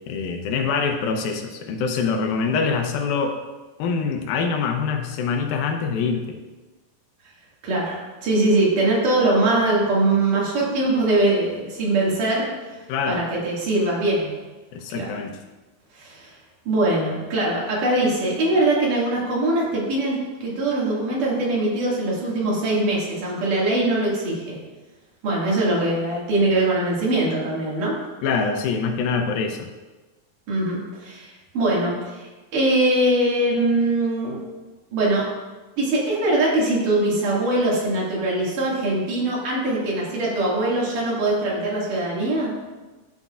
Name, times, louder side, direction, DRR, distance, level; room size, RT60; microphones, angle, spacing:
voice 1, 0.1-3.4 3.8-6.4 12.9-13.2 14.7-15.3 28.2-29.7, left 5 dB, 85° left, 4 dB, 2.7 m, -24 dB
voice 2, 7.6-12.5 13.1-14.3 14.9-15.1 16.0-16.3 16.7-24.6 25.2-28.0 30.5-34.4 34.9-35.3 35.8-42.5, right 2 dB, 65° right, -5 dB, 3.6 m, -22 dB
12.0 x 8.0 x 2.5 m, 1.2 s
omnidirectional pair, 4.1 m